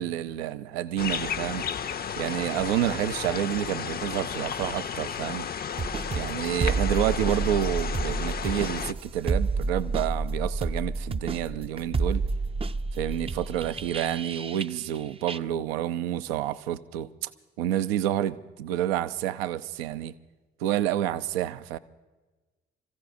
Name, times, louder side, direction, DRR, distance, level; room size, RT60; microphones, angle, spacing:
voice 1, 0.0-1.6 2.2-5.5 6.1-12.2 12.9-17.3 17.6-20.1 20.6-21.8, right 12 dB, 80° right, 0.5 m, -29 dB
sound 1, 1.0-8.9, left 7 dB, 30° left, 0.5 m, -33 dB
sound 2, 5.8-15.0 15.3-15.4, right 3 dB, 20° right, 0.4 m, -30 dB
30.0 x 15.0 x 2.5 m
hypercardioid pair, 40°, 30 cm